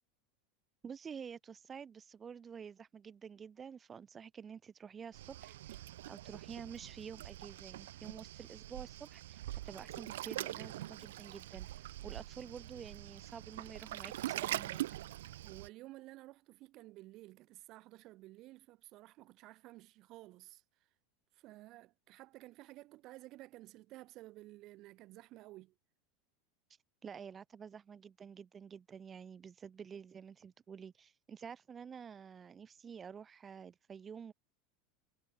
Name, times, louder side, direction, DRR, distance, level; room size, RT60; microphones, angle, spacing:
voice 1, 0.8-5.8 6.1-9.4 9.6-14.8 27.0-34.3, right 7 dB, 25° right, 2.2 m, -49 dB
Waves surf, 5.1-15.7, right 14 dB, 70° right, 0.4 m, -43 dB
voice 2, 15.4-20.6 21.3-25.7, right 18 dB, 50° right, 2.4 m, -54 dB
hypercardioid pair, 85°, 0 cm